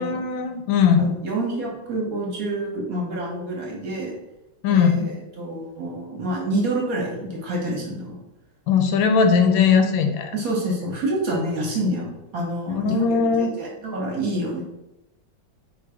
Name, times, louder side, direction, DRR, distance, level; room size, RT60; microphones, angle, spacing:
voice 1, 0.0-1.1 4.6-5.0 8.7-10.3 12.7-13.5, left 6 dB, 85° left, 6 dB, 1.3 m, -19 dB
voice 2, 1.0-4.1 4.7-8.2 10.3-14.6, right 1 dB, 55° right, -2 dB, 1.1 m, -27 dB
3.8 x 2.6 x 4.7 m, 0.95 s
omnidirectional pair, 2.1 m